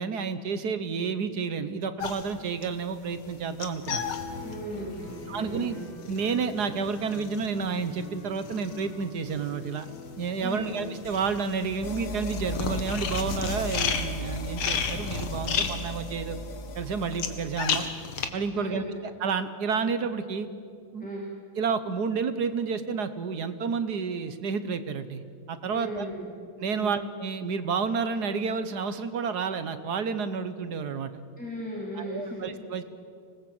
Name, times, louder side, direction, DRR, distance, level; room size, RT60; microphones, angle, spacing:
voice 1, 0.0-4.1 5.3-5.8 6.1-9.9 10.2-16.4 16.7-17.9 18.3-18.8 19.2-20.5 20.9-21.1 21.6-25.2 25.5-26.1 26.6-31.1 31.9-32.8, right 5 dB, 55° right, 11 dB, 1.3 m, -30 dB
sound 1, 2.0-9.5 9.8-18.3, left 6 dB, 85° left, 2.4 m, -33 dB
Guitar, 3.8-11.3, left 1 dB, 70° left, 6.8 m, -44 dB
voice 2, 4.4-5.9 10.4-10.8 18.5-19.0 19.8-19.9 21.0-21.2 25.7-26.3 26.7-26.9 31.4-32.5, equal, 5° left, -3 dB, 2.9 m, -37 dB
sound 2, 11.8-17.9, equal, 40° left, 1.1 m, -37 dB
26.0 x 19.5 x 7.8 m, 2.3 s
omnidirectional pair, 2.3 m